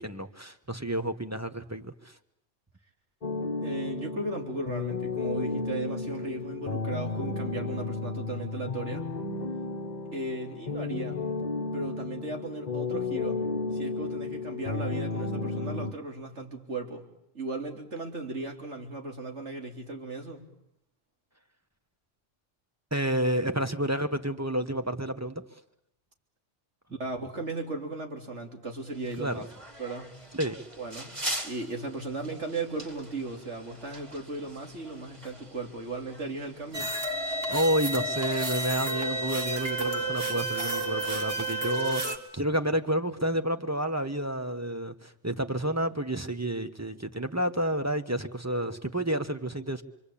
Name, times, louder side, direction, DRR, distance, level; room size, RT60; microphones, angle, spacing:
voice 1, 0.0-2.1 22.9-25.4 29.2-29.4 30.3-30.6 37.3-49.8, right 1 dB, 15° right, 1.4 m, -30 dB
sound 1, 3.2-15.9, left 3 dB, 40° left, 1.4 m, -33 dB
voice 2, 3.6-9.1 10.1-11.3 11.7-13.4 13.7-17.1 17.3-20.5 26.9-29.5 29.8-30.1 30.8-31.2 31.4-36.9, right 2 dB, 75° right, 3.7 m, -36 dB
sound 2, 28.9-41.4, right 1 dB, 35° right, 3.1 m, -44 dB
sound 3, 36.7-42.2, right 2 dB, 55° right, 2.5 m, -31 dB
27.0 x 25.0 x 8.7 m
omnidirectional pair, 1.2 m